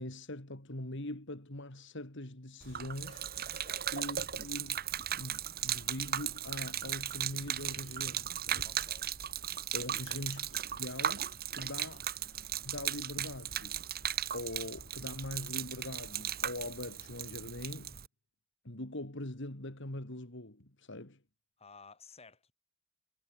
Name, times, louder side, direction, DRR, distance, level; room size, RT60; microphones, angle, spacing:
voice 1, 0.0-3.3 3.9-4.8 5.1-8.7 9.7-12.0 12.6-14.0 14.3-18.0 18.6-21.2, left 1 dB, 60° left, 3.2 m, -42 dB
Gurgling / Liquid, 2.6-18.1, right 10 dB, 50° right, 2.4 m, -37 dB
voice 2, 3.5-3.9 8.6-9.1 10.0-10.2 11.8-12.0 21.6-22.5, left 4 dB, 30° left, 7.3 m, -56 dB
head